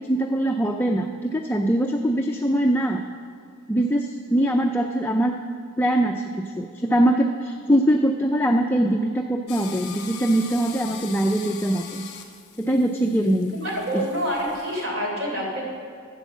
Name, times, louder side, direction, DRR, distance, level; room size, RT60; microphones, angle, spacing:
voice 1, 0.0-3.0 3.7-5.4 5.8-12.0 12.6-13.5 13.9-14.0, right 1 dB, 10° left, 2 dB, 0.4 m, -22 dB
sound 1, 9.5-14.8, left 7 dB, 50° left, 1.3 m, -41 dB
voice 2, 13.5-15.6, equal, 60° right, -1 dB, 3.5 m, -27 dB
13.5 x 8.1 x 7.2 m, 2.1 s
head